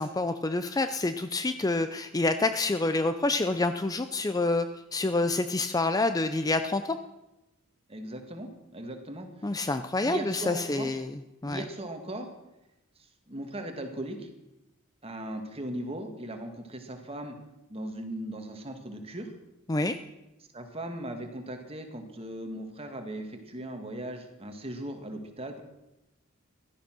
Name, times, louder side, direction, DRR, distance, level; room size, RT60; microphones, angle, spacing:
voice 1, 0.0-4.7 4.9-7.0 9.4-11.1 11.4-11.6 19.7-20.0, left 2 dB, 15° left, 10 dB, 0.5 m, -27 dB
voice 2, 7.9-9.6 10.0-10.9 11.4-12.3 13.3-14.3 15.0-17.4 17.7-19.3 20.5-25.6, right 1 dB, 30° right, 5 dB, 2.0 m, -38 dB
16.0 x 12.5 x 6.0 m, 0.95 s
head